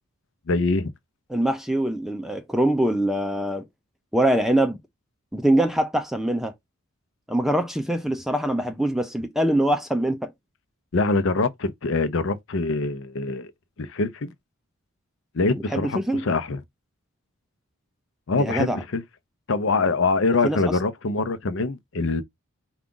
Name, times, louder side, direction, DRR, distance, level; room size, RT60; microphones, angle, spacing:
voice 1, 0.5-0.9 10.9-13.5 13.8-14.3 15.3-16.6 18.3-19.0 19.5-22.2, left 3 dB, 60° left, 0.6 m, -24 dB
voice 2, 1.3-3.6 4.1-4.8 5.3-6.5 7.3-10.3 15.7-16.3 18.4-18.8 20.4-20.7, right 1 dB, ahead, 0.4 m, -23 dB
4.8 x 2.4 x 3.7 m
head